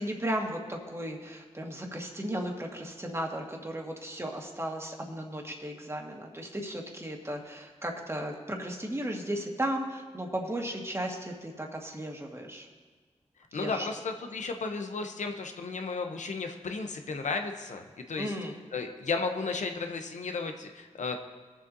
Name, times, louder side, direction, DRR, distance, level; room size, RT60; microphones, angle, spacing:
voice 1, 0.0-12.7 13.5-13.9 18.2-18.5, right 1 dB, 20° right, 1 dB, 1.7 m, -35 dB
voice 2, 13.5-18.3 18.7-21.2, left 4 dB, 85° left, 5 dB, 0.8 m, -34 dB
21.5 x 7.2 x 2.7 m, 1.4 s
cardioid pair, 55°, 12 cm